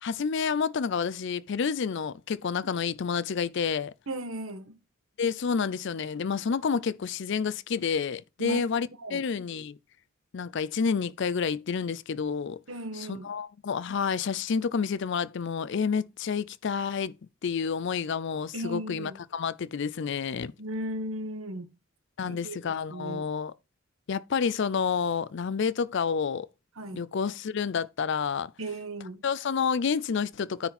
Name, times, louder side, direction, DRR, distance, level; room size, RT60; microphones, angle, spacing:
voice 1, 0.0-3.9 5.2-9.8 10.3-12.6 12.9-17.1 17.4-20.5 22.2-23.5 24.1-26.5 26.9-28.5 29.2-30.7, left 6 dB, 60° left, 0.4 m, -29 dB
voice 2, 4.1-4.8 8.4-8.6 9.0-9.2 12.7-13.3 18.5-19.2 20.6-21.7 22.3-22.6 22.9-23.3 26.8-27.0 28.6-29.2, right 1 dB, 80° right, 1.5 m, -36 dB
9.7 x 4.2 x 4.2 m
head